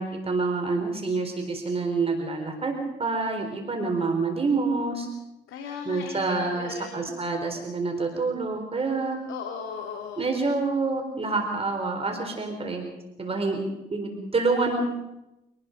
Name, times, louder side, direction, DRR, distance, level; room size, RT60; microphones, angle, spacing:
voice 1, 0.0-5.1 5.8-9.2 10.2-12.8 13.2-13.6 13.9-14.8, right 3 dB, 30° right, 3 dB, 4.2 m, -27 dB
voice 2, 5.5-7.3 9.3-10.3, left 6 dB, 85° left, 2 dB, 2.8 m, -37 dB
26.0 x 19.5 x 5.2 m, 0.94 s
cardioid pair, 90°, 20 cm